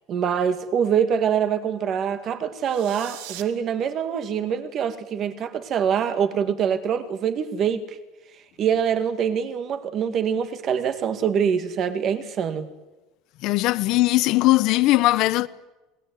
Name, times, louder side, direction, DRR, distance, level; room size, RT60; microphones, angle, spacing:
voice 1, 0.1-8.0 8.6-12.7, right 7 dB, 30° right, 2.1 m, -24 dB
sound 1, 2.6-3.4, right 13 dB, 75° right, 2.4 m, -40 dB
voice 2, 13.4-15.5, left 18 dB, 50° left, 1.0 m, -19 dB
28.0 x 20.5 x 9.5 m
cardioid pair, 170°, 0 cm